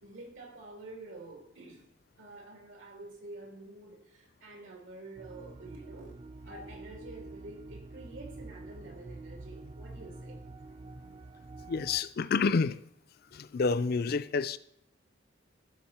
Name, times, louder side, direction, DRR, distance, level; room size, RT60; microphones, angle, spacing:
voice 1, 0.0-1.8 2.2-6.2 6.4-10.4, right 2 dB, 90° right, 2.9 m, -48 dB
sound 1, 5.2-12.0, right 2 dB, 30° right, 0.4 m, -47 dB
voice 2, 11.7-12.8 13.3-14.6, left 4 dB, 50° left, 0.4 m, -29 dB
14.5 x 6.3 x 4.3 m
head